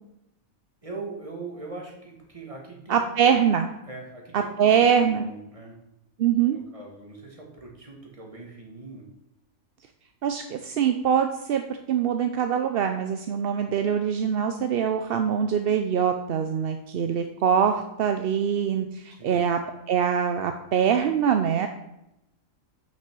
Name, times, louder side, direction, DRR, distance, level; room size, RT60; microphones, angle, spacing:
voice 1, 0.8-3.3 3.8-4.8 5.2-5.8 6.5-9.1 19.1-19.4, right 3 dB, 25° right, -1 dB, 1.9 m, -41 dB
voice 2, 2.9-3.7 4.3-5.3 6.2-6.6 10.2-11.6 11.9-19.6 19.9-21.7, right 8 dB, 60° right, 6 dB, 0.6 m, -23 dB
6.3 x 5.7 x 6.1 m, 0.86 s
omnidirectional pair, 1.5 m